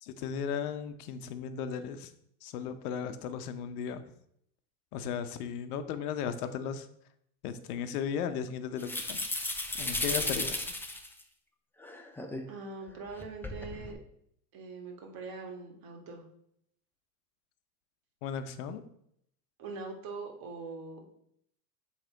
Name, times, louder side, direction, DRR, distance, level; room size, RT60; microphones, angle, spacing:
voice 1, 0.0-2.1 2.4-4.0 4.9-6.9 7.4-9.2 9.8-10.7 18.2-18.8, left 7 dB, 75° left, 10 dB, 0.9 m, -36 dB
sound 1, 8.8-11.2 11.8-12.4 13.1-13.9, left 2 dB, 5° left, 0.6 m, -34 dB
voice 2, 12.5-14.0 14.5-16.2 19.6-21.1, right 4 dB, 45° right, 2 dB, 1.8 m, -42 dB
7.8 x 3.4 x 4.5 m, 0.72 s
hypercardioid pair, 100°, 46 cm